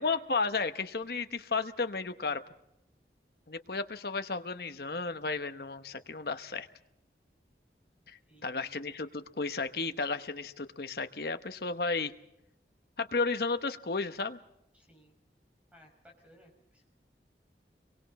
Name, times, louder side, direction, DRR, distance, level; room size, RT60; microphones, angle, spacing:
voice 1, 0.0-2.4 3.5-6.7 8.1-12.1 13.0-14.4, left 4 dB, 60° left, 9 dB, 1.0 m, -33 dB
voice 2, 8.2-8.8 14.7-15.1 15.7-16.8, equal, 10° right, 2 dB, 5.0 m, -60 dB
27.0 x 23.5 x 4.2 m, 0.82 s
head